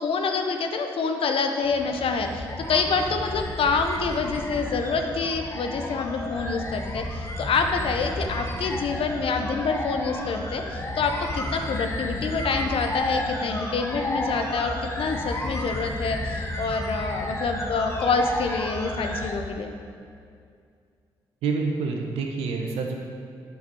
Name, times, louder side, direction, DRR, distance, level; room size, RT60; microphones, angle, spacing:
voice 1, 0.0-19.7, left 4 dB, 65° left, 5 dB, 0.8 m, -27 dB
sound 1, 1.6-19.3, left 1 dB, 25° left, 1.3 m, -32 dB
voice 2, 21.4-23.0, right 4 dB, 85° right, 2 dB, 0.8 m, -27 dB
8.3 x 5.7 x 4.5 m, 2.3 s
hypercardioid pair, 45°, 10 cm